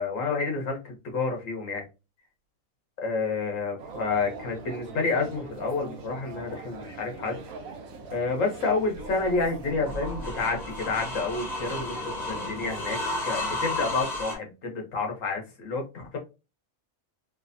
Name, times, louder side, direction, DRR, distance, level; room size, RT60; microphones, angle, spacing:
voice 1, 0.0-1.8 3.0-7.4 8.1-16.2, left 4 dB, 70° left, 1.4 m, -29 dB
sound 1, 3.8-14.0, right 4 dB, 90° right, 1.3 m, -43 dB
sound 2, 9.0-14.3, left 2 dB, 35° left, 1.1 m, -33 dB
3.3 x 3.1 x 2.6 m
omnidirectional pair, 1.4 m